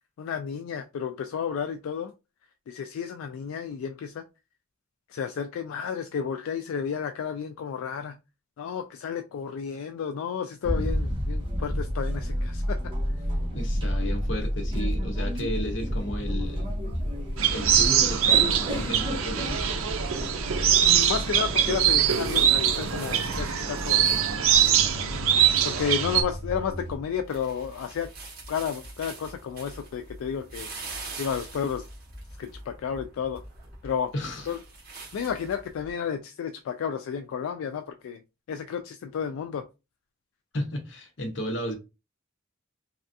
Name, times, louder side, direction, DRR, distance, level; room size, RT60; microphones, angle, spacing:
voice 1, 0.2-2.1 2.7-4.2 5.1-8.2 8.6-12.8 20.9-24.1 25.6-28.1 28.5-30.7 31.2-31.8 32.4-33.4 33.8-34.1 34.5-34.6 35.1-38.2 38.5-39.6, left 7 dB, 85° left, 0.3 m, -32 dB
sound 1, 10.6-27.0, equal, 25° right, 0.8 m, -31 dB
voice 2, 13.5-16.7 17.5-19.8 34.1-34.5 40.5-41.7, equal, 60° left, 0.9 m, -33 dB
sound 2, 17.4-26.2, right 9 dB, 90° right, 0.5 m, -23 dB
sound 3, 20.7-35.9, right 3 dB, 45° right, 1.3 m, -45 dB
3.2 x 2.3 x 2.6 m
head